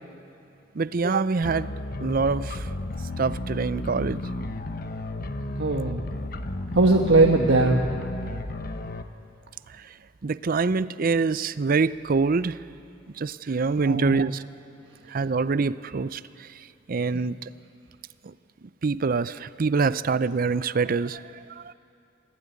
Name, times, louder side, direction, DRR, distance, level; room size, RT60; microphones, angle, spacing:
voice 1, 0.7-1.7 2.0-2.7 3.2-4.2 10.2-12.6 13.2-14.4 15.1-16.5 16.9-17.5 18.2-18.3 18.8-21.2 21.5-21.7, right 4 dB, 50° right, 16 dB, 0.5 m, -25 dB
sound 1, 1.4-9.0, left 1 dB, 50° left, 1.0 m, -33 dB
voice 2, 5.4-6.0 6.7-7.8 13.8-14.2, right 2 dB, 85° right, 1 dB, 1.3 m, -20 dB
25.0 x 16.0 x 9.6 m, 2.6 s
head